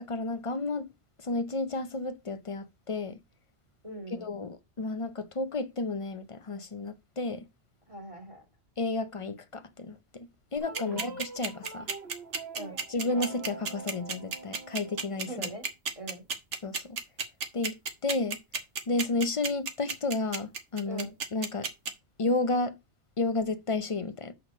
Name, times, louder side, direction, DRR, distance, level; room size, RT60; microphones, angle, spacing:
voice 1, 0.1-0.9 1.2-3.2 4.1-7.4 8.8-11.9 12.9-15.3 16.6-17.0 17.5-17.8 18.0-18.4 18.9-21.7 22.2-22.7 23.2-24.3, left 3 dB, 35° left, 0.6 m, -32 dB
voice 2, 3.8-4.3 7.9-8.4 10.8-11.1 12.5-12.8 15.3-15.7 16.0-16.2 20.9-21.1, right 1 dB, 25° right, 2.4 m, -41 dB
sound 1, 10.6-15.6, right 4 dB, 60° right, 1.5 m, -44 dB
sound 2, 10.6-21.9, right 5 dB, 85° right, 1.5 m, -32 dB
6.3 x 5.9 x 5.0 m
omnidirectional pair, 1.2 m